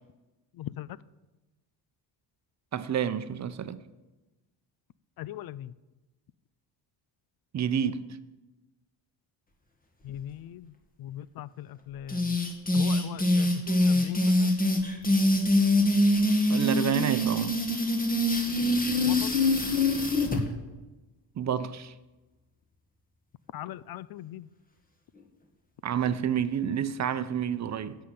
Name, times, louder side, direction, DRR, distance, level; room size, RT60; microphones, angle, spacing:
voice 1, 2.7-3.8 7.5-8.0 16.5-17.6 21.3-21.9 25.8-28.0, right 8 dB, 45° right, 0.8 m, -29 dB
voice 2, 5.2-5.7 10.0-10.7 11.0-12.4 12.7-14.5 19.0-19.4 23.5-24.5, left 12 dB, 60° left, 0.5 m, -40 dB
sound 1, 12.1-20.4, left 1 dB, 20° left, 2.0 m, -24 dB
15.0 x 5.8 x 7.8 m
cardioid pair, 110°, 40 cm